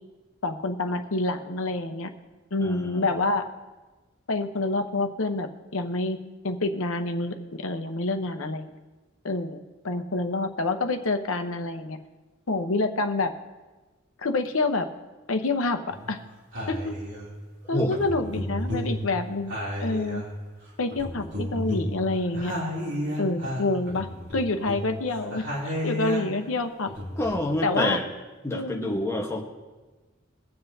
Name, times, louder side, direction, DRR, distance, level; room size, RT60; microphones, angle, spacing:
voice 1, 0.4-2.1 2.5-3.5 4.3-6.2 6.4-8.8 9.2-9.6 9.8-12.0 12.5-13.3 14.2-14.9 15.3-16.2 16.7-16.9 17.7-19.5 19.8-20.2 20.8-22.5 23.2-26.9 27.6-28.0 28.5-28.9, left 2 dB, 85° left, 7 dB, 0.9 m, -27 dB
voice 2, 2.6-3.1 17.7-18.0 27.2-28.0 28.4-29.4, left 1 dB, 15° left, -2 dB, 1.2 m, -27 dB
sound 1, 15.9-16.1 16.5-17.4 17.9-20.6 20.9-26.5 26.9-27.4, left 1 dB, 60° right, 2.8 m, -33 dB
23.5 x 7.8 x 2.7 m, 1.3 s
head